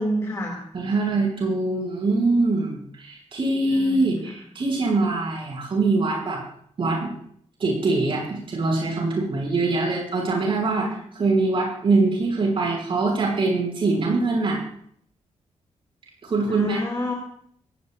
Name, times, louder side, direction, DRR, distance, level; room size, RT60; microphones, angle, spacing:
voice 1, 0.0-0.6 3.7-4.3 10.8-11.0 16.5-17.1, equal, 25° left, -1 dB, 2.6 m, -29 dB
voice 2, 0.7-6.4 6.8-7.1 7.6-10.9 11.1-14.6 16.2-16.9, right 3 dB, 50° right, -2 dB, 6.5 m, -23 dB
25.0 x 17.0 x 2.6 m, 0.63 s
wide cardioid pair, 165°, 12 cm